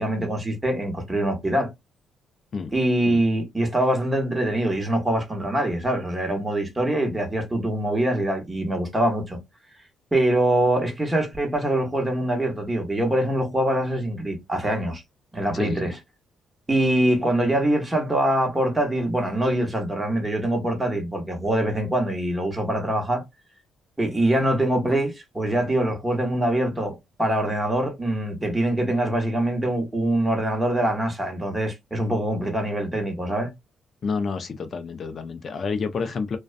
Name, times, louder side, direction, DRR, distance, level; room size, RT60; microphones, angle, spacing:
voice 1, 0.0-1.7 2.7-9.4 10.1-15.0 15.3-16.0 16.7-23.2 24.0-33.5, right 1 dB, 15° right, 1.0 m, -24 dB
voice 2, 15.5-15.9 34.0-36.4, left 5 dB, 45° left, 0.5 m, -29 dB
2.5 x 2.2 x 2.4 m
cardioid pair, 90°, 0 cm